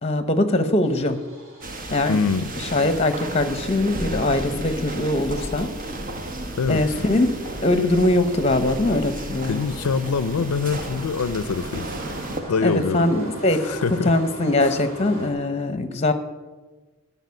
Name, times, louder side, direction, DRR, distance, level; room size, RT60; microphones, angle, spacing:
voice 1, 0.0-1.2 1.9-2.2 2.6-5.7 6.7-7.3 7.6-9.6 12.6-13.7 14.0-16.1, left 2 dB, 25° left, 9 dB, 0.9 m, -21 dB
Engine starting, 0.8-15.3, right 1 dB, 60° right, 3.8 m, -42 dB
sound 1, 1.6-12.4, right 1 dB, 40° right, 1.1 m, -33 dB
voice 2, 2.1-2.5 6.6-6.8 9.4-11.9 12.5-13.1 13.5-14.1 14.6-14.8, left 5 dB, 85° left, 14 dB, 0.5 m, -24 dB
13.0 x 5.7 x 9.6 m, 1.3 s
head